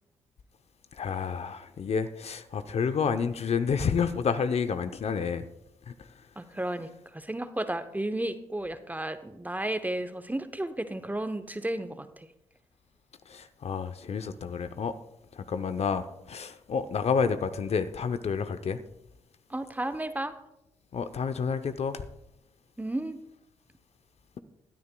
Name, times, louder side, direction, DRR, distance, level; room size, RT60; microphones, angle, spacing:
voice 1, 0.9-5.5 5.9-6.1 13.3-14.9 15.3-18.8 20.9-22.0, left 6 dB, 50° left, 0.7 m, -29 dB
voice 2, 6.4-12.3 19.5-20.3 22.8-23.2, right 1 dB, 10° right, 0.8 m, -33 dB
19.5 x 9.5 x 2.3 m
supercardioid pair, 50°, 13 cm